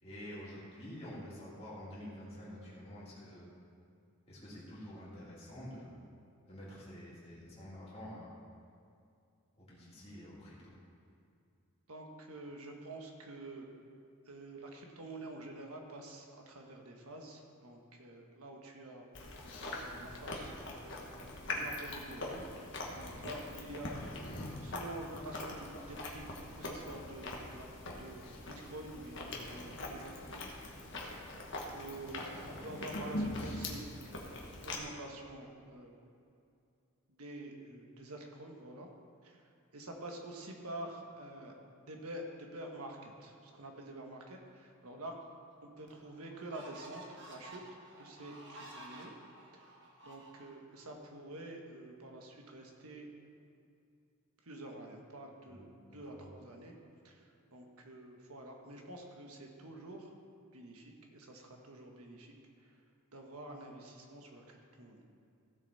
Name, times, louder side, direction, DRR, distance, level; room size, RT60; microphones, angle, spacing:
voice 1, 0.0-3.5 4.3-6.0 6.5-8.3 9.6-10.7 32.0-32.2 32.5-32.6 55.5-55.6 55.9-56.3, equal, 25° left, -8 dB, 3.0 m, -48 dB
voice 2, 11.9-13.7 14.2-20.5 20.8-21.1 21.5-22.4 23.0-24.0 24.3-26.3 26.5-27.7 28.0-30.5 31.7-36.0 37.1-38.9 39.2-41.5 41.8-45.2 45.6-47.6 48.0-49.1 49.5-49.7 50.0-53.1 54.4-55.6 55.9-56.7 57.0-60.1 60.5-62.3 62.6-62.8 63.1-65.0, right 1 dB, 85° right, 2 dB, 1.4 m, -48 dB
Chewing mastication, 19.2-34.8, left 1 dB, 55° left, 1.4 m, -42 dB
sound 1, 45.2-45.3 45.9-50.8, right 1 dB, 50° right, 1.6 m, -53 dB
15.5 x 6.9 x 4.2 m, 2.5 s
head